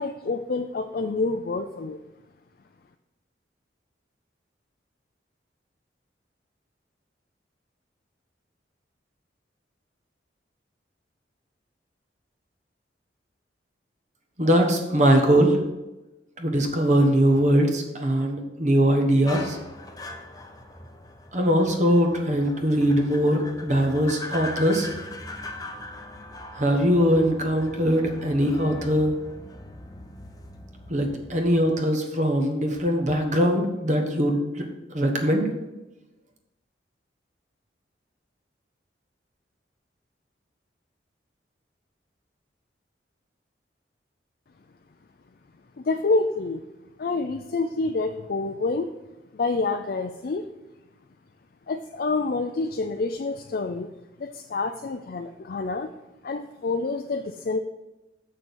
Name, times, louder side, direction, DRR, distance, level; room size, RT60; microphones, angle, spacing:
voice 1, 0.0-2.0 45.8-46.6 47.0-48.9 49.3-50.5 51.7-53.9 54.2-55.9 56.2-57.6, left 3 dB, 50° left, 6 dB, 0.4 m, -27 dB
voice 2, 14.4-15.6 16.4-19.6 21.3-24.9 26.5-29.1 30.9-34.7 34.9-35.5, equal, 40° right, 3 dB, 1.2 m, -21 dB
sound 1, 19.3-31.6, left 1 dB, 20° left, 0.7 m, -40 dB
6.9 x 6.2 x 6.2 m, 1.0 s
head